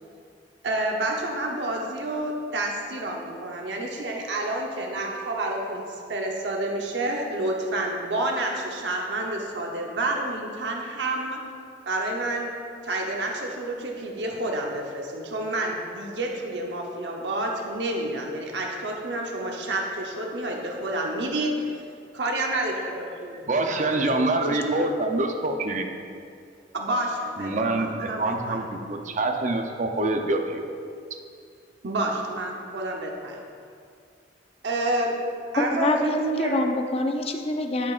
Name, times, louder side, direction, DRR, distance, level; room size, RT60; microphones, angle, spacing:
voice 1, 0.6-11.4 11.9-12.5 12.8-21.5 22.1-23.4 23.7-23.9 24.5-24.9 26.7-28.6 31.8-33.4 34.6-35.2 35.5-36.6, right 1 dB, 75° right, 0 dB, 0.9 m, -29 dB
voice 2, 23.4-25.9 27.4-30.7, right 2 dB, 45° right, 4 dB, 0.6 m, -26 dB
voice 3, 35.6-37.9, left 2 dB, 35° left, 5 dB, 0.5 m, -26 dB
13.0 x 6.1 x 2.5 m, 2.4 s
head